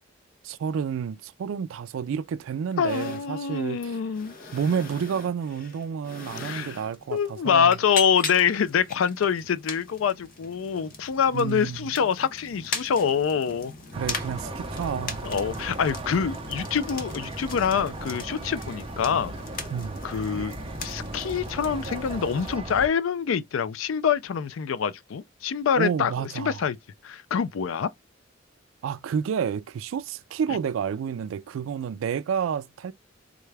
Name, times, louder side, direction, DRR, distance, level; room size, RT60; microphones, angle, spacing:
voice 1, 0.4-4.0 4.5-7.8 11.3-11.9 14.0-15.2 19.7-20.0 25.8-26.6 28.8-32.9, right 7 dB, 85° right, 0.3 m, -30 dB
voice 2, 2.8-4.4 6.4-6.8 7.1-13.7 15.2-19.3 20.0-20.5 20.8-26.8 27.0-27.9, left 7 dB, 85° left, 0.4 m, -25 dB
sound 1, 2.9-22.6, left 4 dB, 45° left, 0.7 m, -40 dB
sound 2, 13.9-22.9, right 2 dB, 30° right, 0.6 m, -36 dB
3.7 x 2.2 x 3.2 m
head